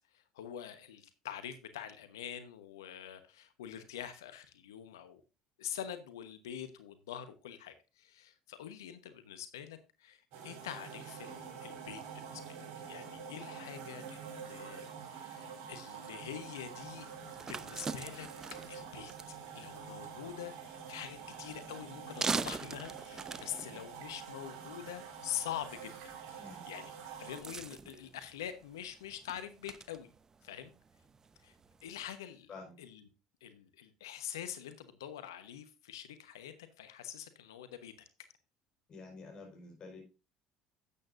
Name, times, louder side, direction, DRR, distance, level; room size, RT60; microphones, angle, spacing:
voice 1, 0.1-5.2 5.6-12.6 12.9-17.1 17.5-18.3 18.7-19.1 19.5-25.9 26.3-26.9 27.2-30.1 30.4-30.7 31.4-31.5 31.8-32.5 32.8-33.0 33.4-37.9, left 10 dB, 80° left, 1.1 m, -45 dB
sound 1, 10.3-27.4, right 7 dB, 65° right, 3.4 m, -47 dB
sound 2, 16.9-32.1, right 5 dB, 30° right, 0.8 m, -44 dB
voice 2, 26.4-26.7 32.5-32.8 38.9-40.0, left 3 dB, 45° left, 4.9 m, -49 dB
12.0 x 8.8 x 2.6 m
hypercardioid pair, 70°, 2 cm